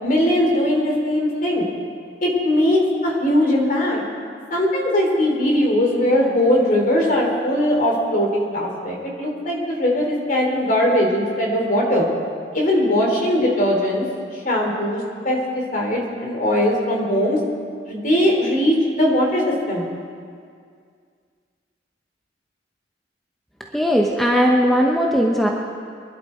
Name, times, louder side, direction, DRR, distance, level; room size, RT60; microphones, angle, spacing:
voice 1, 0.0-1.7 2.2-4.0 4.5-12.1 12.5-14.1 14.3-17.4 17.8-19.8, left 1 dB, 45° left, -1 dB, 3.0 m, -20 dB
voice 2, 23.7-25.5, equal, ahead, -1 dB, 0.9 m, -18 dB
23.5 x 11.5 x 4.4 m, 2.2 s
head